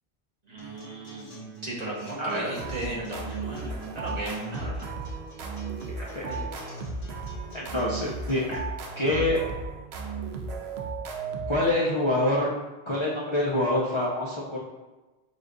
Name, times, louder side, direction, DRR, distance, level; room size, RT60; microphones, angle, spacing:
voice 1, 0.5-1.3 1.6-4.9 6.3-6.4, right 2 dB, 40° right, -4 dB, 0.9 m, -36 dB
Acoustic guitar, 0.6-8.6, right 3 dB, 60° left, 1.4 m, -45 dB
sound 1, 2.6-12.1, right 4 dB, 85° right, 0.8 m, -35 dB
voice 2, 6.0-6.3 7.5-8.6 9.0-9.4 11.5-12.5 12.9-14.6, left 1 dB, 35° left, -7 dB, 0.6 m, -26 dB
6.6 x 2.4 x 2.5 m, 1.1 s
omnidirectional pair, 1.0 m